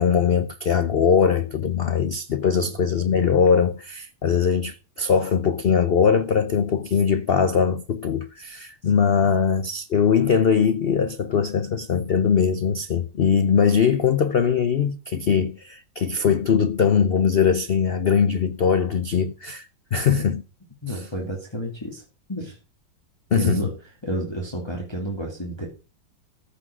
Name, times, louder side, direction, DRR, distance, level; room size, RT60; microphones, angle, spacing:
voice 1, 0.0-20.4 20.9-21.1 23.3-23.6, left 6 dB, 85° left, 0.5 m, -21 dB
voice 2, 20.8-22.0 22.3-22.6 23.3-23.7 24.0-25.7, right 1 dB, 15° left, 2.4 m, -30 dB
14.0 x 6.0 x 6.1 m
omnidirectional pair, 2.0 m